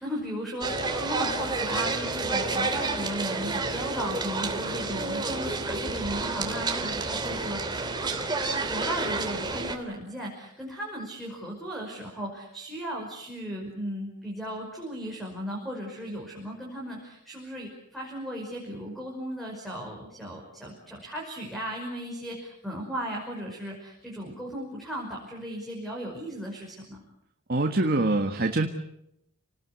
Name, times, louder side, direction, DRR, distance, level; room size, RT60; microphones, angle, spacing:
voice 1, 0.0-8.1 8.5-27.0, equal, ahead, -1 dB, 5.6 m, -36 dB
sound 1, 0.6-9.8, right 3 dB, 20° right, 2.9 m, -30 dB
voice 2, 27.5-28.7, right 2 dB, 45° right, 4 dB, 1.7 m, -24 dB
29.5 x 19.5 x 8.3 m, 0.80 s
head